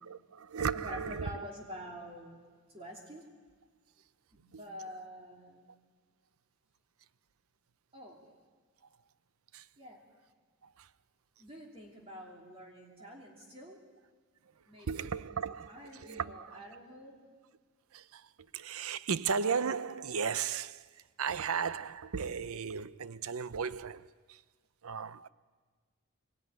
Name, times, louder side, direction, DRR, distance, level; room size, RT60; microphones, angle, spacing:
voice 1, 0.0-1.4 4.5-4.6 9.5-9.7 10.6-10.9 13.0-13.1 14.6-16.6 17.9-24.4 24.8-25.3, right 6 dB, 75° right, 0.6 m, -36 dB
voice 2, 0.7-3.3 4.3-5.7 7.9-8.2 9.8-10.0 11.4-13.8 14.7-17.2, equal, 25° right, 3.2 m, -47 dB
23.5 x 19.5 x 9.5 m
head